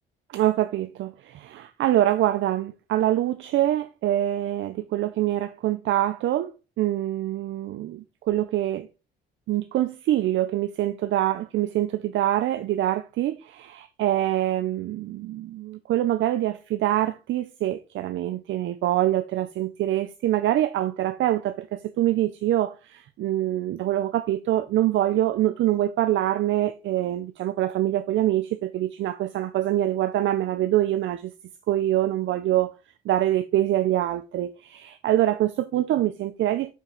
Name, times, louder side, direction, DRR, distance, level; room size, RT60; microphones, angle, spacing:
voice 1, 0.3-6.5 6.8-8.9 9.5-31.3 31.7-32.7 33.1-36.7, right 13 dB, 75° right, 0.5 m, -25 dB
7.1 x 5.7 x 3.9 m
cardioid pair, 90°, 20 cm